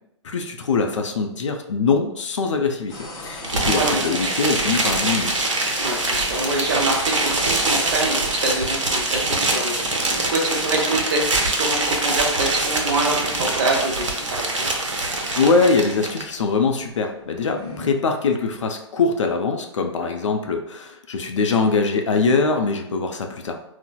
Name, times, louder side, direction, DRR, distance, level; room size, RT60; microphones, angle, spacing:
voice 1, 0.2-5.3 15.4-23.6, left 4 dB, 75° left, 4 dB, 0.5 m, -22 dB
sound 1, 2.9-17.9, left 2 dB, 20° left, 0.6 m, -38 dB
sound 2, 3.4-16.2, right 2 dB, 85° right, 0.6 m, -24 dB
voice 2, 5.8-10.0 10.3-14.7, right 2 dB, 50° right, 0 dB, 0.8 m, -25 dB
4.1 x 2.0 x 2.3 m, 0.82 s
hypercardioid pair, 125°, 16 cm